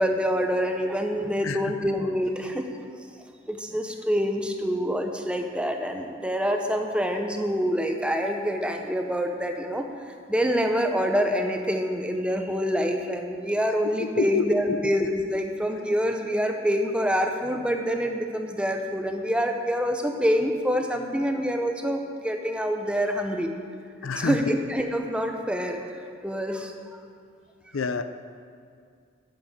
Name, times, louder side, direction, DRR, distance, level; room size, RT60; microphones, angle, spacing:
voice 1, 0.0-2.7 3.5-9.9 10.3-23.5 24.2-27.0, equal, 5° right, 4 dB, 0.7 m, -26 dB
voice 2, 24.0-24.4 27.7-28.0, left 5 dB, 85° left, 10 dB, 0.6 m, -27 dB
8.8 x 7.7 x 7.9 m, 2.2 s
head